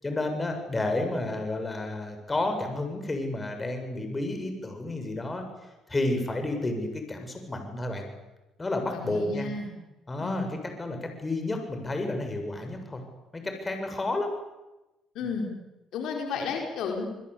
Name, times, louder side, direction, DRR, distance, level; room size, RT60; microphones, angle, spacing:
voice 1, 0.0-5.5 5.9-8.1 8.6-9.5 10.1-10.5 10.8-13.0 13.3-14.3, left 2 dB, 20° left, 5 dB, 7.5 m, -31 dB
voice 2, 8.9-9.7 10.2-10.6 15.1-15.5 15.9-17.1, left 4 dB, 75° left, 2 dB, 4.7 m, -32 dB
27.0 x 21.5 x 8.6 m, 1.0 s
supercardioid pair, 75°, 0 cm